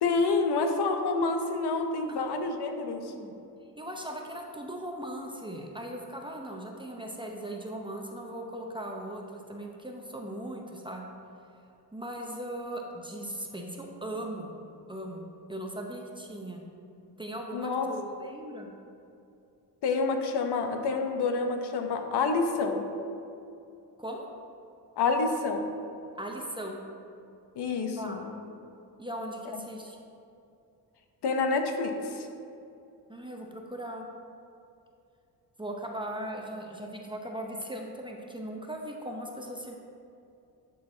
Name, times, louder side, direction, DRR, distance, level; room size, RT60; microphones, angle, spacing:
voice 1, 0.0-3.1 17.5-17.9 19.8-22.8 25.0-25.7 27.6-28.3 31.2-32.3, left 4 dB, 65° left, 5 dB, 0.9 m, -28 dB
voice 2, 2.1-2.8 3.1-3.3 3.8-11.1 11.9-14.5 14.9-16.6 17.2-18.7 24.0-24.2 26.2-26.8 28.0-28.2 29.0-30.0 33.1-34.0 35.6-39.8, right 1 dB, 10° right, 0 dB, 0.7 m, -39 dB
11.5 x 4.0 x 3.8 m, 2.6 s
cardioid pair, 95°, 42 cm